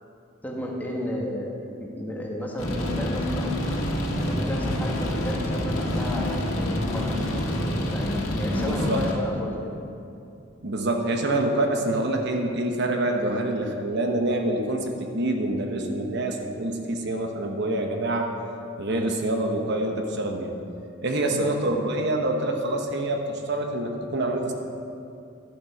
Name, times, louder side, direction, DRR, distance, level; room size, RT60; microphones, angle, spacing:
voice 1, 0.4-1.5 1.8-3.6 4.1-7.1 7.5-9.7 18.9-19.2 21.3-21.7, left 1 dB, 10° left, -2 dB, 1.4 m, -33 dB
sound 1, 2.6-9.1, left 1 dB, 80° left, 1.7 m, -27 dB
voice 2, 8.4-9.4 10.6-18.3 18.8-20.5 21.0-24.5, right 1 dB, 60° right, 3 dB, 1.0 m, -26 dB
12.0 x 7.4 x 5.8 m, 2.6 s
head